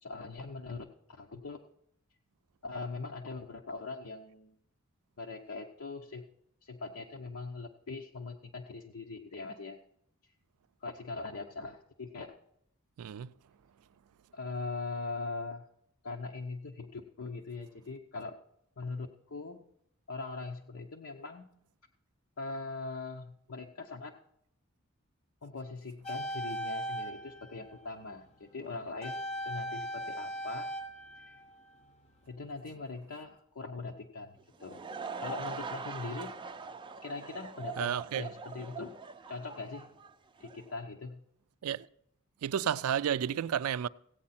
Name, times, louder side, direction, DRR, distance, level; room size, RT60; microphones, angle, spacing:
voice 1, 0.0-1.6 2.6-4.5 5.2-6.3 6.6-9.8 10.8-12.3 14.3-15.7 16.0-18.4 18.8-19.7 20.1-21.5 22.4-24.1 25.4-30.7 32.3-34.9 35.2-36.4 37.0-39.0 39.3-39.9 40.4-41.2, left 3 dB, 75° left, 0.8 m, -41 dB
voice 2, 13.0-13.3 37.8-38.3 41.6-41.9 42.4-43.9, right 9 dB, 90° right, 0.4 m, -31 dB
sound 1, 26.0-28.1 29.0-32.1 32.4-32.6, equal, 30° left, 0.7 m, -39 dB
Laughter / Crowd, 34.4-40.7, right 5 dB, 20° right, 0.4 m, -42 dB
16.0 x 8.5 x 4.2 m
head